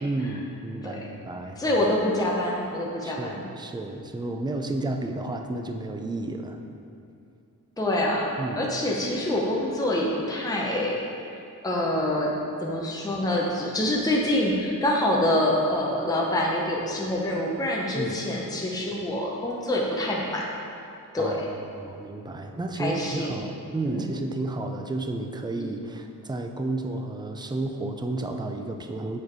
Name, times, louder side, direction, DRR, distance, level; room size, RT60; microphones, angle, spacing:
voice 1, 0.0-1.7 3.0-6.6 8.4-8.7 17.9-18.2 21.2-29.2, right 2 dB, 15° right, 5 dB, 0.4 m, -32 dB
voice 2, 1.6-3.4 7.8-8.3 8.6-11.0 11.6-12.3 12.6-20.4 21.1-21.3 22.8-23.3 23.8-24.0, left 1 dB, 10° left, -3 dB, 0.8 m, -26 dB
7.1 x 4.6 x 4.8 m, 2.5 s
wide cardioid pair, 130°, 33 cm